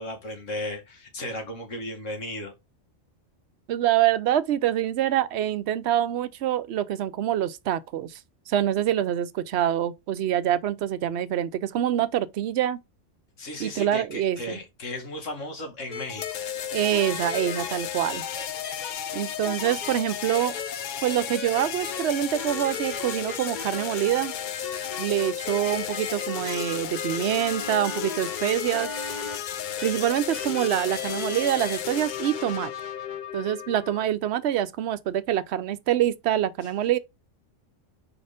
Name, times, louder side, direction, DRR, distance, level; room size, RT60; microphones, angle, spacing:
voice 1, 0.0-2.5 13.4-16.4, left 1 dB, 80° left, 2.1 m, -35 dB
voice 2, 3.7-8.2 8.5-12.8 13.6-14.6 16.7-18.2 19.1-20.6 21.0-24.3 25.0-28.9 29.8-32.7 33.3-37.0, right 11 dB, 65° right, 0.8 m, -25 dB
sound 1, 15.9-16.3 16.9-17.7 18.1-18.9 19.4-19.9 20.3-20.7 21.1-22.1 22.4-23.8 24.6-29.4 29.8-29.9 30.3-31.8, left 4 dB, 40° left, 1.0 m, -37 dB
sound 2, 16.1-34.1, left 9 dB, 55° left, 0.5 m, -34 dB
4.9 x 4.2 x 5.0 m
omnidirectional pair, 1.3 m